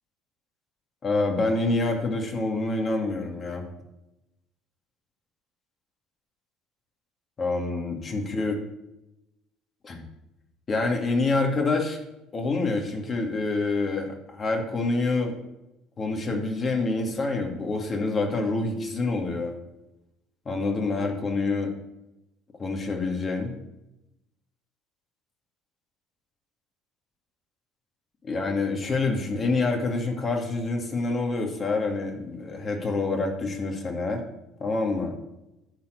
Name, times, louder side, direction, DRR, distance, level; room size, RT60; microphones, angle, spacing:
voice 1, 1.0-3.7 7.4-8.6 9.8-10.0 10.7-12.0 12.3-15.4 16.0-19.6 20.5-21.7 22.6-23.6 28.2-34.2 34.6-35.2, left 3 dB, 35° left, 3 dB, 2.2 m, -27 dB
10.5 x 4.5 x 6.7 m, 0.90 s
hypercardioid pair, 70°, 0 cm